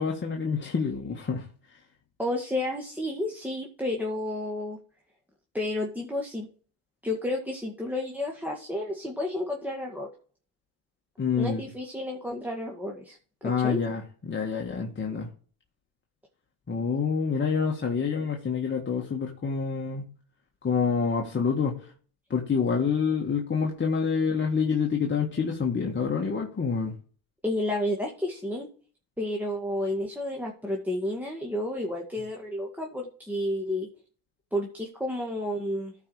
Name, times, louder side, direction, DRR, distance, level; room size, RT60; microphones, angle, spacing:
voice 1, 0.0-1.5 11.2-11.6 13.4-15.3 16.7-20.1 20.6-21.9 22.3-26.9, left 5 dB, 25° left, 0 dB, 1.7 m, -27 dB
voice 2, 2.2-4.8 5.5-6.5 7.0-10.1 11.4-13.2 13.4-13.8 27.4-28.7 29.2-33.9 34.5-35.9, left 1 dB, 5° right, -1 dB, 1.9 m, -31 dB
14.0 x 4.9 x 4.8 m, 0.42 s
supercardioid pair, 95°, 44 cm